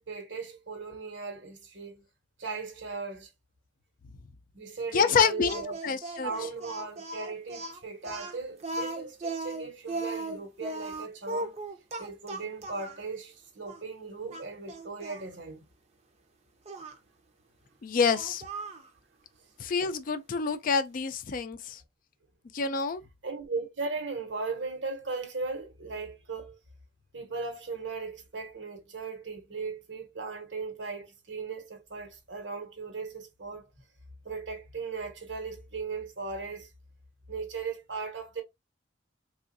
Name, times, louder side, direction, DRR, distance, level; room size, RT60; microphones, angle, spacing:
voice 1, 0.0-2.0 2.4-3.3 4.5-5.8 6.2-11.6 12.0-15.6 23.2-26.6 27.1-33.7 34.2-36.7 37.3-38.4, right 4 dB, 75° right, 1.1 m, -37 dB
voice 2, 4.9-6.3 17.8-18.4 19.6-21.8 22.5-23.0, left 6 dB, 50° left, 0.4 m, -27 dB
Speech, 5.5-13.0 13.7-13.8 14.3-15.2 16.7-17.0 18.1-18.9, right 2 dB, 35° right, 0.6 m, -37 dB
3.5 x 2.4 x 2.6 m
head